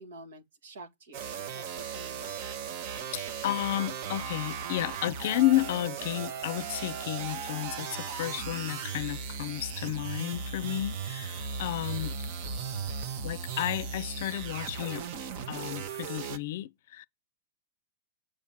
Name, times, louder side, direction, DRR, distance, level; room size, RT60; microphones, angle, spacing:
voice 1, 0.0-2.4, right 2 dB, 80° right, 2.2 m, -49 dB
sound 1, 1.1-16.4, right 6 dB, 50° right, 1.1 m, -37 dB
voice 2, 3.1-12.2 13.2-15.1 15.5-17.0, left 15 dB, 60° left, 0.5 m, -32 dB
7.5 x 4.9 x 7.2 m
hypercardioid pair, 140°, 0 cm